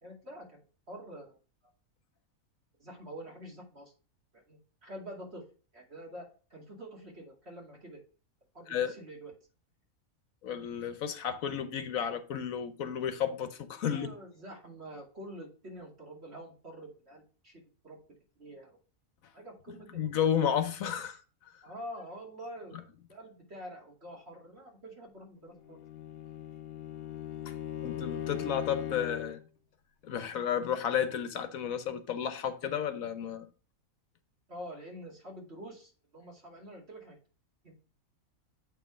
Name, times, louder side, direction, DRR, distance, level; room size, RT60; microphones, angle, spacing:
voice 1, 0.0-1.4 2.8-3.9 4.3-5.5 5.7-8.0 8.5-9.3 13.8-18.0 18.4-18.7 19.3-20.0 21.6-22.8 23.1-25.8 34.5-37.2 37.6-37.7, equal, 50° right, 2.7 m, -46 dB
voice 2, 10.4-14.1 19.7-21.2 27.5-27.6 27.8-29.4 30.0-33.5, left 8 dB, 75° left, 1.2 m, -32 dB
Bowed string instrument, 25.6-29.5, left 10 dB, 50° left, 0.9 m, -39 dB
8.1 x 4.8 x 3.5 m
omnidirectional pair, 1.5 m